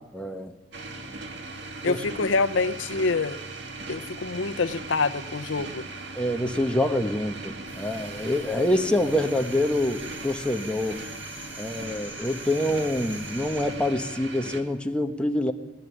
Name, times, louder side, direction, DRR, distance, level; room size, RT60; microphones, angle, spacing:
voice 1, 0.1-0.5 1.8-2.0 6.1-11.0 11.6-15.5, left 1 dB, 5° left, 4 dB, 1.3 m, -26 dB
sound 1, 0.7-14.6, right 3 dB, 65° right, 1.9 m, -38 dB
voice 2, 1.8-3.4 3.9-5.9, left 3 dB, 85° left, 13 dB, 0.7 m, -26 dB
sound 2, 7.7-14.0, equal, 10° right, 3.5 m, -44 dB
19.0 x 16.0 x 9.9 m, 1.1 s
head